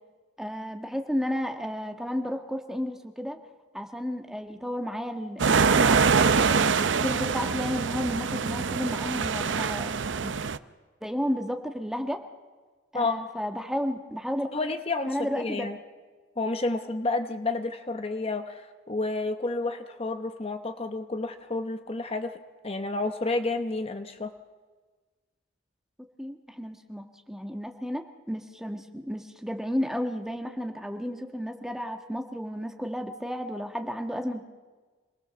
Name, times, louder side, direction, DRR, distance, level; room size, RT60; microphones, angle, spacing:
voice 1, 0.4-3.4 3.7-6.1 6.5-10.0 10.2-10.3 11.0-12.2 12.9-14.5 15.1-15.7 26.2-34.4, equal, ahead, 4 dB, 1.5 m, -32 dB
sound 1, 5.4-10.6, right 5 dB, 85° right, 0.7 m, -24 dB
voice 2, 14.5-15.8 16.4-24.3, left 3 dB, 30° left, 8 dB, 1.0 m, -30 dB
26.5 x 19.5 x 6.9 m, 1.4 s
head